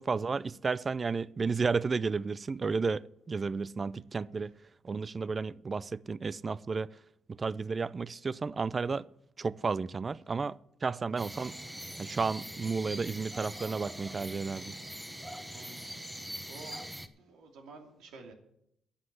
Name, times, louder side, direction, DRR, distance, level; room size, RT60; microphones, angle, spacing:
voice 1, 0.0-4.5 4.8-6.9 7.3-9.1 9.4-11.6 12.0-14.8, right 4 dB, 35° right, 0.4 m, -32 dB
sound 1, 11.2-17.1, right 1 dB, 5° right, 1.1 m, -42 dB
voice 2, 15.5-16.8 17.2-18.3, right 4 dB, 85° right, 2.7 m, -52 dB
11.5 x 7.8 x 8.0 m
cardioid pair, 90°, 0 cm